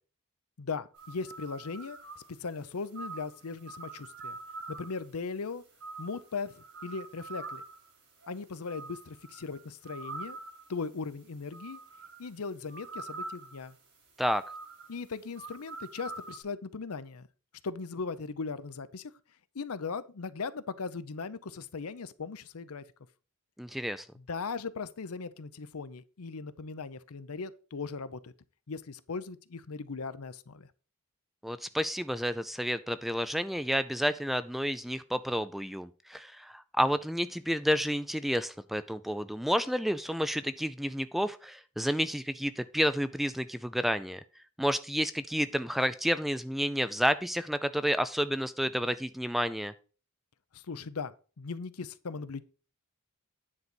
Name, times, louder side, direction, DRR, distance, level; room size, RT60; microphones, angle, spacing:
voice 1, 0.6-4.4 4.7-5.6 6.0-7.6 8.3-10.4 10.7-11.8 12.2-13.8 14.9-17.3 17.6-19.1 19.5-22.8 24.2-28.3 28.7-30.7 50.5-52.4, left 4 dB, 75° left, 0.6 m, -38 dB
sound 1, 0.9-16.4, right 3 dB, 75° right, 5.1 m, -46 dB
voice 2, 23.6-24.1 31.4-44.2 44.6-49.7, equal, ahead, 0.3 m, -30 dB
9.8 x 4.0 x 6.1 m
head